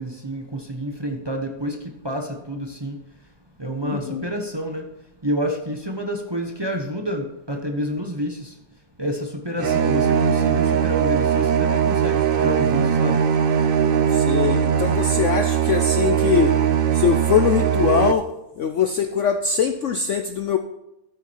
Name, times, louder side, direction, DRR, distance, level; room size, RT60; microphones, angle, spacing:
voice 1, 0.0-1.8 2.0-3.0 3.6-4.8 5.2-8.5 9.0-13.2, equal, 20° right, 3 dB, 0.9 m, -28 dB
voice 2, 3.8-4.3 14.1-16.6 16.9-18.3 18.6-20.6, left 7 dB, 65° left, 7 dB, 0.8 m, -22 dB
sound 1, 9.6-18.1, right 8 dB, 85° right, 0.4 m, -20 dB
13.0 x 7.3 x 4.6 m, 0.93 s
omnidirectional pair, 1.8 m